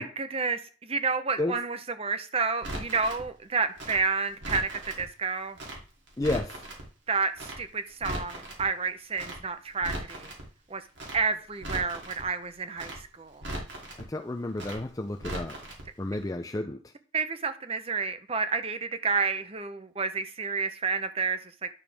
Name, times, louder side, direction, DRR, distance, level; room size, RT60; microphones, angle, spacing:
voice 1, 0.0-5.6 7.1-10.3 10.7-10.8 11.1-13.4 17.1-21.7, right 4 dB, 30° right, 0.8 m, -30 dB
Crackle, 2.6-3.2 3.8-5.0 5.5-5.8 6.1-6.8 7.4-7.6 7.9-8.6 9.1-9.4 9.7-10.4 10.9-11.2 11.5-12.2 12.7-13.0 13.3-14.0 14.5-14.8 15.1-15.8 16.1-16.2, right 1 dB, 70° right, 2.9 m, -38 dB
voice 2, 6.2-6.5 14.0-15.6 16.0-16.8, left 2 dB, 20° left, 0.4 m, -31 dB
10.5 x 6.8 x 3.5 m
head